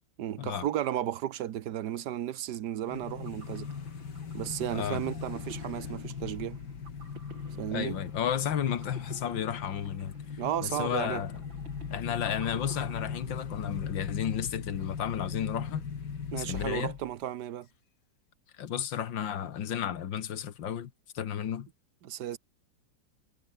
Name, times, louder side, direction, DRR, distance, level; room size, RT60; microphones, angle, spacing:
voice 1, 0.2-3.7 4.3-6.6 7.6-8.0 10.4-11.2 16.3-17.7 22.0-22.4, right 11 dB, 65° right, 1.4 m, -34 dB
sound 1, 2.9-17.1, left 6 dB, 65° left, 2.6 m, -39 dB
sound 2, 3.1-13.8, right 3 dB, 85° right, 5.7 m, -52 dB
voice 2, 4.7-5.0 7.7-11.4 11.9-15.9 16.4-17.0 18.6-21.7, left 9 dB, 80° left, 2.1 m, -33 dB
omnidirectional pair, 2.0 m